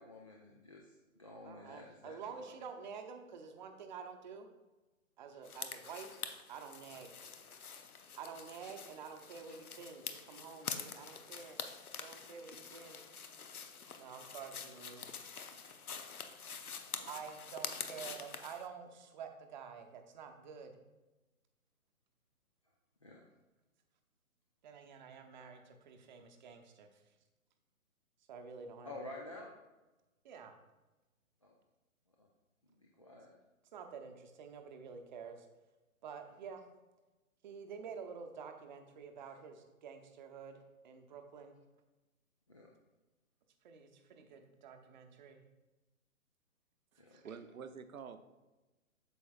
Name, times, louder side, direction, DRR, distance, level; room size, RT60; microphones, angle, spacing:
voice 1, 0.0-2.2 2.5-2.6 16.9-17.1 23.0-23.2 28.8-29.5 31.4-31.5 32.2-32.3 32.8-33.3 39.2-39.4 42.5-42.7 47.0-47.2, left 2 dB, 25° left, -2 dB, 0.4 m, -50 dB
voice 2, 1.4-4.5 5.2-6.2 6.5-7.1 8.2-11.6 12.0-13.0 14.0-15.1 17.1-20.7 24.6-27.0 28.3-29.0 30.2-30.5 33.7-35.5 36.0-36.6 37.4-41.6 43.6-45.4 47.1-47.2, right 6 dB, 30° right, 5 dB, 0.8 m, -49 dB
sound 1, 5.4-18.7, left 6 dB, 80° left, 0.9 m, -46 dB
voice 3, 46.9-48.2, right 6 dB, 70° right, 10 dB, 0.8 m, -48 dB
8.5 x 6.9 x 2.4 m, 1.1 s
figure-of-eight pair, 135°, 43 cm